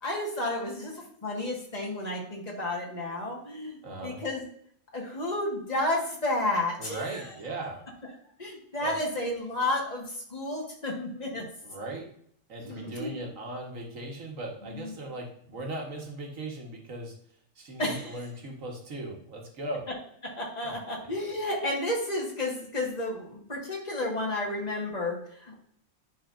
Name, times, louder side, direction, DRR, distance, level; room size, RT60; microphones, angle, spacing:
voice 1, 0.0-4.4 4.9-7.2 8.4-11.5 12.6-13.3 14.7-14.9 17.8-18.2 20.2-25.6, left 1 dB, 30° left, -1 dB, 1.6 m, -32 dB
voice 2, 3.8-4.2 6.8-7.8 8.8-8.9 11.3-12.0 12.5-17.1 17.6-19.9 20.6-20.7, right 2 dB, 65° right, 0 dB, 1.7 m, -38 dB
10.0 x 4.2 x 2.5 m, 0.66 s
omnidirectional pair, 1.5 m